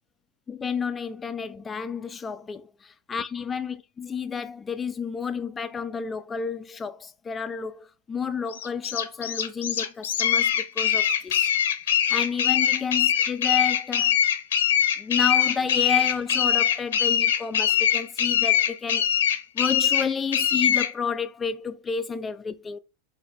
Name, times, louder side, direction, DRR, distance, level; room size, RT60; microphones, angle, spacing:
voice 1, 0.5-2.6 3.1-11.5 12.1-14.2 15.0-19.1 19.5-22.8, left 6 dB, 20° left, 0.4 m, -31 dB
sound 1, 8.5-20.9, left 9 dB, 80° left, 0.8 m, -22 dB
4.4 x 2.6 x 3.5 m
hypercardioid pair, 105°, 0 cm